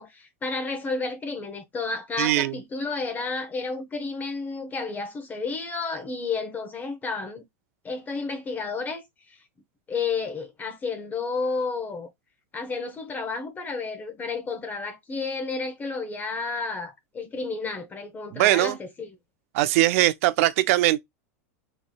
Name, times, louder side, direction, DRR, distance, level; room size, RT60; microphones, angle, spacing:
voice 1, 0.0-7.4 7.8-9.4 9.9-12.1 12.5-19.1, left 4 dB, 20° left, 0.8 m, -31 dB
voice 2, 2.2-2.5 18.3-18.8 19.5-21.0, right 16 dB, 65° right, 0.5 m, -21 dB
4.0 x 3.1 x 2.2 m
supercardioid pair, 125°, 8 cm